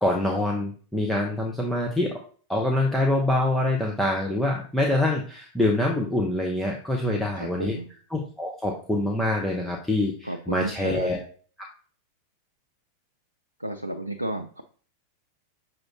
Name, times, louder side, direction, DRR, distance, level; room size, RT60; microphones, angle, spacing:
voice 1, 0.0-2.2 2.5-7.8 8.1-11.2, left 1 dB, ahead, -1 dB, 0.7 m, -25 dB
voice 2, 7.0-7.9 10.2-11.1 13.6-14.6, right 1 dB, 85° right, 4 dB, 0.3 m, -33 dB
6.1 x 2.5 x 3.1 m, 0.42 s
figure-of-eight pair, 90°, 0 cm